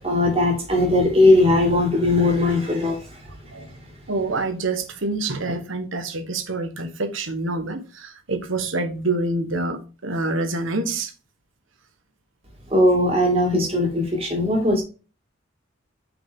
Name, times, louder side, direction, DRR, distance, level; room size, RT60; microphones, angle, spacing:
voice 1, 0.0-3.0 12.7-14.8, left 1 dB, 30° right, 2.4 m, -19 dB
voice 2, 4.1-11.1, right 2 dB, 80° right, 1.2 m, -26 dB
5.6 x 5.2 x 3.6 m
head